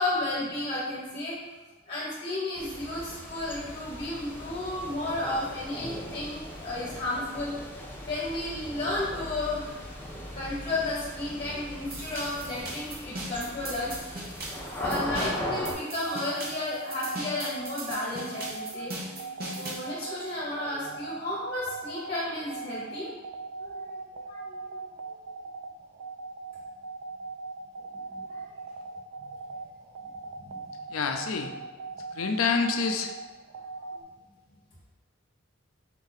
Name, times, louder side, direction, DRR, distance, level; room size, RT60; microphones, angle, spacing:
voice 1, 0.0-1.4 1.9-7.5 8.1-9.9 10.3-14.3 14.8-18.9 19.5-23.1 23.6-23.9 24.3-24.8 28.1-28.5 29.2-29.4 30.3-30.6 33.9-34.0, left 2 dB, 30° left, -7 dB, 1.1 m, -33 dB
sound 1, 2.6-15.7, left 1 dB, 10° left, 0.6 m, -39 dB
sound 2, 11.9-19.9, right 1 dB, 50° right, 0.9 m, -39 dB
sound 3, 14.7-34.0, right 4 dB, 80° right, 0.4 m, -39 dB
voice 2, 30.9-31.5 32.1-33.1, left 5 dB, 85° left, 5 dB, 0.5 m, -27 dB
4.6 x 2.6 x 4.0 m, 1.2 s
head